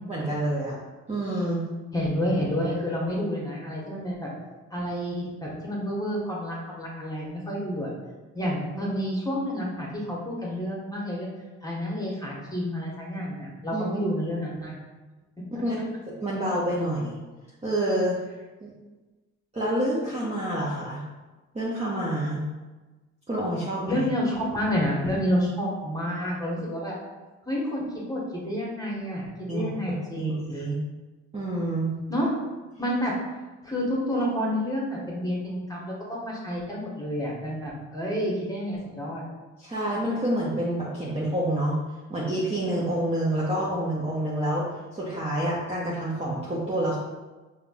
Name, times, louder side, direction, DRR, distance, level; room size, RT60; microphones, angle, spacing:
voice 1, 0.1-0.7 1.1-1.7 13.7-13.9 15.5-15.8 16.1-17.2 17.6-18.2 18.6-18.7 19.5-21.0 21.5-22.4 23.3-24.1 29.5-30.8 31.3-31.9 39.6-41.8 42.1-44.6 44.9-47.0, right 1 dB, 15° right, -6 dB, 0.9 m, -28 dB
voice 2, 1.9-4.3 4.7-7.9 8.3-11.3 11.6-14.7 23.9-26.9 27.4-29.3 29.5-30.4 32.1-32.3 32.8-33.2 33.6-39.2, equal, 10° left, -5 dB, 1.4 m, -29 dB
5.0 x 2.9 x 2.4 m, 1.2 s
hypercardioid pair, 55°, 37 cm